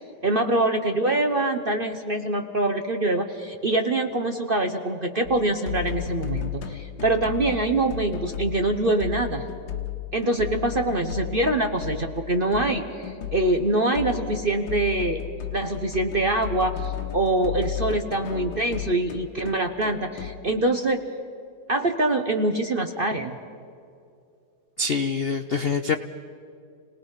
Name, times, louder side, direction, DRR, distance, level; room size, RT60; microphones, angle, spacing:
voice 1, 0.2-9.5 10.1-15.2 15.5-21.0 21.7-23.4, right 2 dB, 40° right, 6 dB, 0.9 m, -24 dB
sound 1, 5.2-20.4, left 11 dB, 85° left, 2.0 m, -34 dB
voice 2, 24.8-26.0, left 4 dB, 70° left, 8 dB, 0.5 m, -25 dB
29.5 x 19.0 x 5.7 m, 2.5 s
omnidirectional pair, 2.0 m